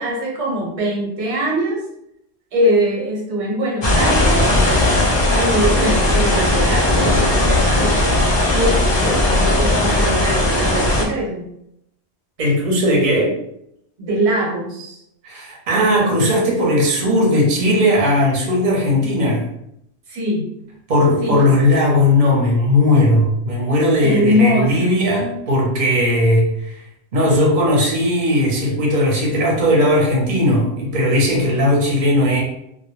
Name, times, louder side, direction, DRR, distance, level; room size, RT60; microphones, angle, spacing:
voice 1, 0.0-1.8 2.5-4.5 5.3-8.2 8.5-11.5 14.0-15.0 20.1-20.5 21.2-21.5 24.0-24.9, equal, 85° right, -3 dB, 1.1 m, -22 dB
sound 1, 3.8-11.1, left 1 dB, 35° left, 0.4 m, -17 dB
voice 2, 12.4-13.3 15.2-19.5 20.9-26.8 27.1-32.4, left 1 dB, 45° right, -3 dB, 0.8 m, -17 dB
2.1 x 2.1 x 3.0 m, 0.77 s
omnidirectional pair, 1.1 m